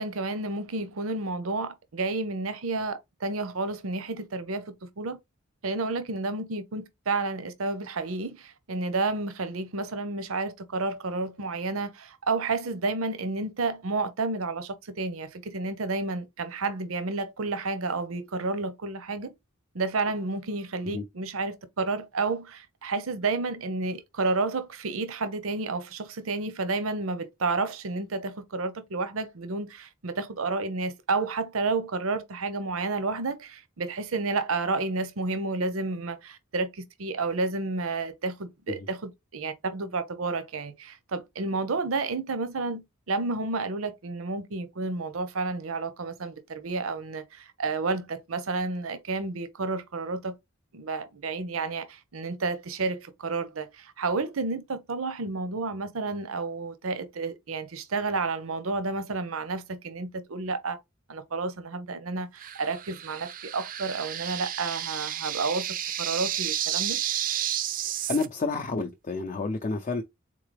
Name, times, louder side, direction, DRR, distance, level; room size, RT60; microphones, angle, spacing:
voice 1, 0.0-5.2 5.6-19.3 19.7-42.8 43.1-50.3 50.7-60.8 61.1-67.0, right 3 dB, 85° right, 0.7 m, -31 dB
sound 1, 62.4-68.3, right 11 dB, 40° right, 0.4 m, -31 dB
voice 2, 68.1-70.0, left 3 dB, 35° left, 0.5 m, -29 dB
3.9 x 3.8 x 3.2 m
head